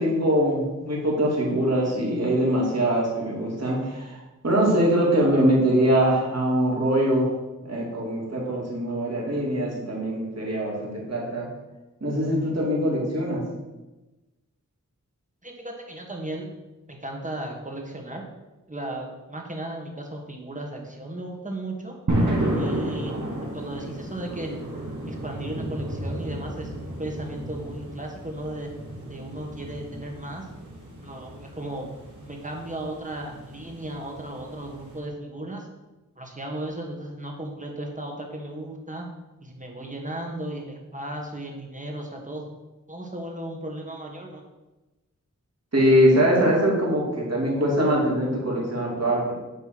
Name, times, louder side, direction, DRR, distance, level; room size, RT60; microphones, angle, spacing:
voice 1, 0.0-7.3 7.6-11.5 12.0-13.4 45.7-49.3, equal, 55° right, -4 dB, 2.5 m, -23 dB
voice 2, 15.4-16.5 16.9-18.2 18.7-22.0 22.6-23.1 23.5-24.6 25.1-28.7 29.1-30.5 31.0-31.9 32.2-35.7 36.2-39.1 39.4-42.5 42.9-44.4, right 1 dB, 25° right, 1 dB, 1.5 m, -35 dB
sound 1, 22.1-35.0, right 1 dB, 70° right, 1.9 m, -32 dB
9.5 x 3.4 x 6.1 m, 1.1 s
wide cardioid pair, 60°, 31 cm